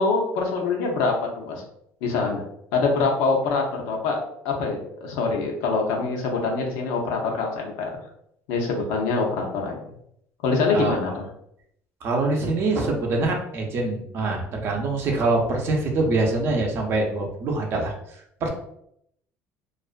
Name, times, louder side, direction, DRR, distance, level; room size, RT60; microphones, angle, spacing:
voice 1, 0.0-1.6 2.0-2.4 2.7-4.2 4.4-7.9 8.5-9.8 10.4-11.3 12.4-12.5, left 4 dB, 85° left, 1 dB, 0.6 m, -24 dB
voice 2, 10.7-11.2 12.0-17.9 18.4-18.5, right 2 dB, 50° right, 1 dB, 0.6 m, -24 dB
2.4 x 2.2 x 2.4 m, 0.73 s
cardioid pair, 125°, 5 cm